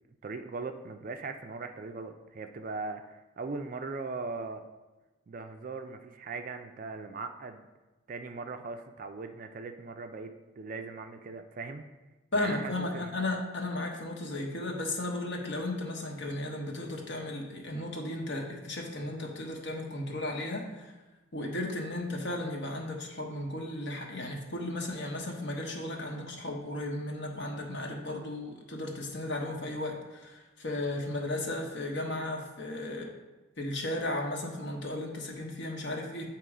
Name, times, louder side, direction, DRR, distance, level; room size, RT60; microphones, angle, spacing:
voice 1, 0.2-4.6 5.3-7.7 8.1-11.8 12.3-13.3, right 3 dB, 40° right, 7 dB, 0.4 m, -39 dB
voice 2, 12.3-20.9 21.3-33.1 33.6-36.3, left 1 dB, 55° left, 1 dB, 1.1 m, -35 dB
9.0 x 3.0 x 4.8 m, 1.1 s
head